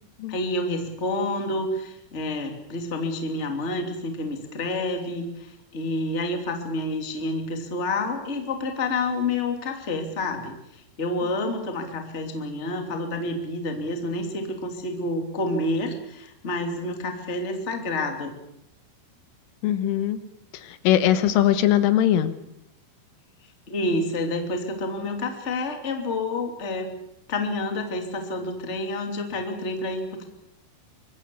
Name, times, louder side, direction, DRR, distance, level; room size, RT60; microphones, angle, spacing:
voice 1, 0.3-18.3 23.7-26.9 27.3-30.2, left 2 dB, 20° left, 4 dB, 2.0 m, -29 dB
voice 2, 19.6-20.2 20.5-22.3, left 11 dB, 80° left, 11 dB, 3.6 m, -21 dB
25.0 x 21.5 x 7.0 m, 0.81 s
omnidirectional pair, 5.8 m